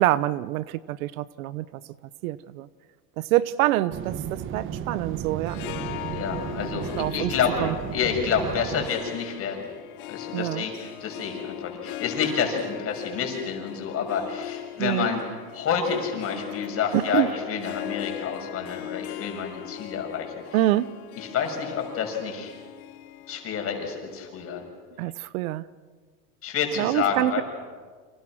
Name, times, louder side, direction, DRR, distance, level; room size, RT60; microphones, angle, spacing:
voice 1, 0.0-1.8 2.2-2.7 3.2-5.6 7.0-7.3 7.6-7.7 10.3-10.6 14.8-15.1 16.9-17.3 20.5-21.0 25.0-25.6 26.8-27.4, right 15 dB, 65° right, 17 dB, 0.9 m, -25 dB
sound 1, 3.9-8.9, right 9 dB, 25° right, 1.1 m, -34 dB
Harp, 5.3-24.7, left 13 dB, 65° left, 1.7 m, -39 dB
voice 2, 6.1-9.7 10.1-15.2 15.5-20.3 21.2-22.5 23.3-24.6 26.4-27.4, left 6 dB, 30° left, 3 dB, 6.6 m, -29 dB
29.5 x 26.5 x 6.2 m, 1.5 s
supercardioid pair, 135°, 46 cm